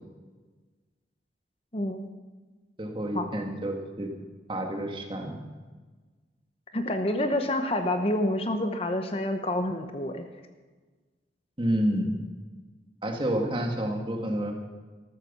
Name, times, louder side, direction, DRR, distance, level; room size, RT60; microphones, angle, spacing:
voice 1, 1.7-2.1 3.1-3.3 6.7-10.2, left 1 dB, 35° left, 6 dB, 1.0 m, -28 dB
voice 2, 2.8-4.1 4.5-5.4 11.6-12.1 13.0-14.5, right 1 dB, 30° right, 3 dB, 1.9 m, -29 dB
13.5 x 13.5 x 5.6 m, 1.4 s
head